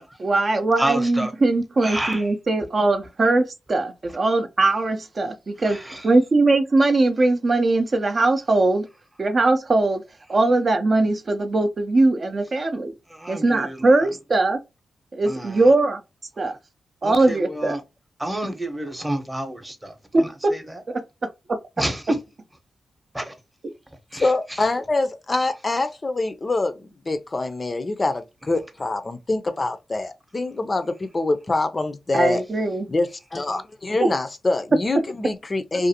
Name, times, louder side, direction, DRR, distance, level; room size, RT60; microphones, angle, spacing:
voice 1, 0.2-5.8 6.0-8.9 9.2-10.0 10.3-12.9 13.3-14.6 15.1-16.0 16.4-16.6 17.0-17.8 20.1-20.5 20.9-21.0 21.5-21.6 32.1-32.8 34.0-34.1, right 2 dB, 45° right, 0.5 m, -20 dB
voice 2, 0.8-1.3 1.8-2.3 5.6-6.1 13.1-14.1 15.3-15.7 17.0-17.8 18.2-20.8 21.8-22.2 23.1-23.3 24.1-24.7, right 1 dB, 10° right, 0.8 m, -30 dB
voice 3, 24.1-32.4 32.9-35.9, left 2 dB, 35° left, 0.4 m, -25 dB
2.5 x 2.4 x 2.7 m
cardioid pair, 70°, 0 cm